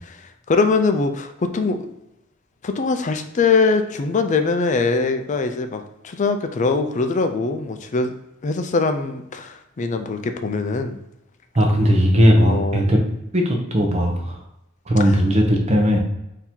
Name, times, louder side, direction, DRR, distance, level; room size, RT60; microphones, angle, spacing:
voice 1, 0.5-1.8 2.6-8.1 8.4-11.0 12.4-12.8, left 4 dB, 35° left, 7 dB, 0.4 m, -22 dB
voice 2, 11.5-13.0 13.3-14.4 14.9-16.0, equal, 30° right, 1 dB, 0.8 m, -17 dB
3.8 x 2.8 x 4.4 m, 0.89 s
head